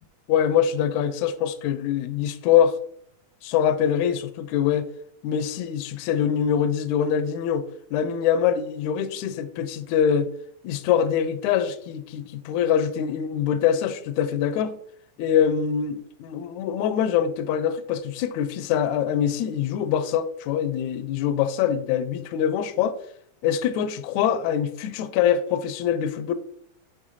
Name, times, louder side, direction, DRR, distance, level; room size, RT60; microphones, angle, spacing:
voice 1, 0.3-2.8 3.4-4.9 5.2-10.3 10.6-14.8 15.2-23.0 23.4-26.3, left 9 dB, 80° left, 1.7 m, -24 dB
6.4 x 3.1 x 5.5 m
omnidirectional pair, 3.7 m